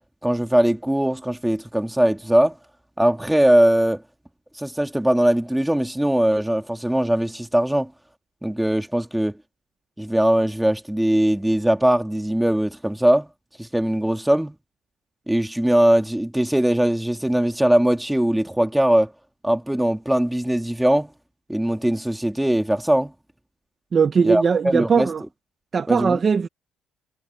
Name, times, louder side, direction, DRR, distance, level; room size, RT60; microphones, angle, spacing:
voice 1, 0.2-2.6 3.0-4.0 4.6-7.9 8.4-9.4 10.0-13.3 13.6-14.5 15.3-19.1 19.4-21.1 21.5-23.1 24.2-25.1 25.9-26.2, right 1 dB, 5° right, 1.7 m, -20 dB
voice 2, 23.9-25.2 25.7-26.5, right 6 dB, 25° right, 0.6 m, -19 dB
cardioid pair, 170°, 0 cm